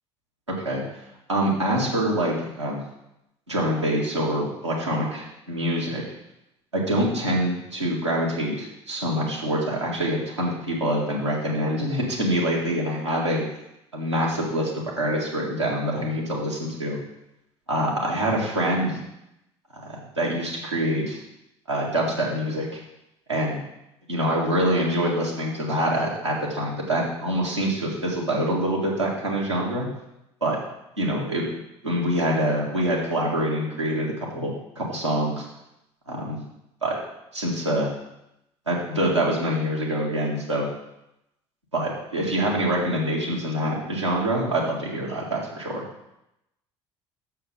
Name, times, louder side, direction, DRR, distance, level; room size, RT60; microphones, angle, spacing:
voice 1, 1.3-2.8 3.5-6.0 6.7-13.4 13.9-17.0 17.7-19.0 19.7-21.2 21.7-22.8 23.3-23.6 24.1-29.9 30.4-30.6 31.0-31.5 31.8-35.4 36.1-36.4 36.8-37.0 37.3-37.9 38.7-40.6 41.7-45.8, right 1 dB, 90° right, -5 dB, 1.8 m, -25 dB
6.6 x 5.7 x 6.6 m, 0.87 s
figure-of-eight pair, 55°, 15 cm